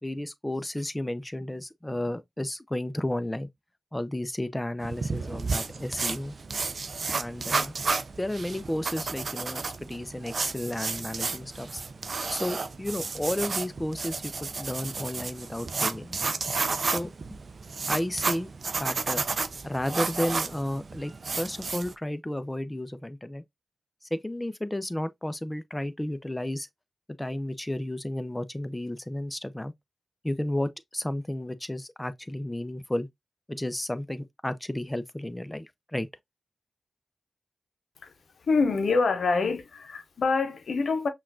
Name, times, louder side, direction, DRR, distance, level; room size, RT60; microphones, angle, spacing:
voice 1, 0.0-3.5 3.9-6.3 7.1-7.7 8.1-11.8 12.3-16.2 16.8-17.1 17.9-18.5 18.8-19.2 19.6-23.4 24.1-26.7 27.2-29.7 30.2-33.1 33.5-36.1, left 1 dB, 15° left, 0.6 m, -32 dB
sound 1, 4.8-21.9, right 4 dB, 65° right, 0.4 m, -32 dB
voice 2, 38.5-41.1, left 4 dB, 80° left, 0.7 m, -25 dB
5.6 x 2.4 x 2.5 m
cardioid pair, 45°, 0 cm